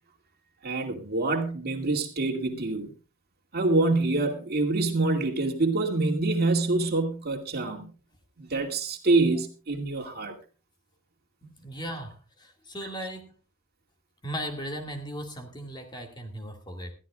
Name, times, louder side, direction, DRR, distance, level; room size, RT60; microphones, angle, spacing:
voice 1, 0.6-2.9 3.5-7.8 8.4-10.3, right 2 dB, 50° right, 2.3 m, -26 dB
voice 2, 11.4-13.3 14.2-16.9, equal, 20° left, 2.2 m, -37 dB
21.0 x 13.5 x 2.4 m
head